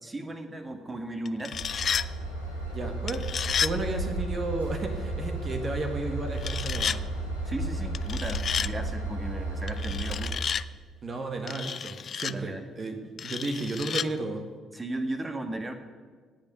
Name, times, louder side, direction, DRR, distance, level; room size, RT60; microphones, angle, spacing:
voice 1, 0.0-1.6 7.5-10.5 12.3-12.7 14.7-15.7, right 1 dB, 20° right, 6 dB, 1.8 m, -36 dB
sound 1, 1.3-2.1 3.1-3.7 6.4-7.0 7.9-8.7 9.7-10.6 11.5-12.3 13.2-14.1, left 7 dB, 45° left, 0.4 m, -31 dB
Train / Engine, 1.5-10.2, right 2 dB, 80° right, 3.0 m, -33 dB
voice 2, 2.7-3.2 3.6-7.0 11.0-14.4, right 2 dB, 35° right, 5 dB, 1.6 m, -33 dB
17.5 x 6.0 x 9.5 m, 1.5 s
figure-of-eight pair, 45°, 0 cm